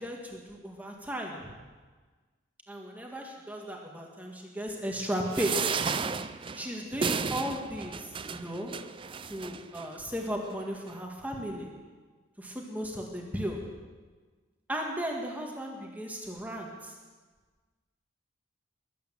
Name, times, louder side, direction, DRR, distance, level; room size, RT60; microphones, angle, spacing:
voice 1, 0.0-1.6 2.7-5.5 6.5-8.7 9.3-11.7 12.4-13.6 14.7-16.9, equal, 10° right, 0 dB, 1.7 m, -35 dB
sound 1, 5.3-9.9 10.5-10.6 10.9-11.0, right 5 dB, 25° right, 0.4 m, -33 dB
22.0 x 8.7 x 7.5 m, 1.4 s
head